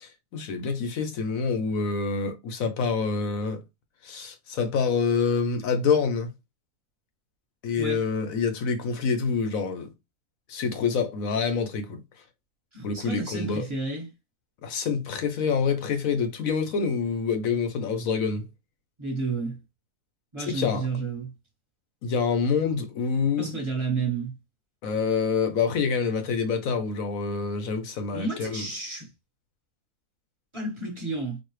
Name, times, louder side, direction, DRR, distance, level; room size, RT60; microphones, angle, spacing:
voice 1, 0.0-3.6 4.0-6.3 7.6-9.9 10.5-12.0 12.8-13.6 14.6-18.4 20.4-20.9 22.0-23.5 24.8-28.7, left 5 dB, 65° left, 1.2 m, -26 dB
voice 2, 12.7-14.1 19.0-19.6 20.3-21.3 23.4-24.3 28.1-29.1 30.5-31.4, right 3 dB, 20° right, 1.3 m, -31 dB
4.1 x 2.4 x 3.1 m
omnidirectional pair, 1.6 m